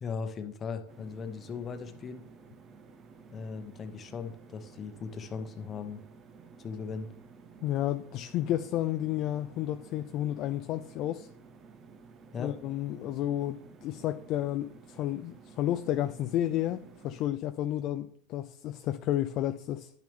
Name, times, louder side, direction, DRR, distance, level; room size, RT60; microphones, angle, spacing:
voice 1, 0.0-2.2 3.3-6.0 6.6-7.1 12.3-12.5, left 5 dB, 30° left, 1.0 m, -38 dB
sound 1, 0.9-17.3, right 5 dB, 35° right, 0.8 m, -53 dB
voice 2, 7.6-11.3 12.4-19.9, left 12 dB, 50° left, 0.4 m, -31 dB
10.0 x 6.2 x 3.5 m
hypercardioid pair, 110°, 0 cm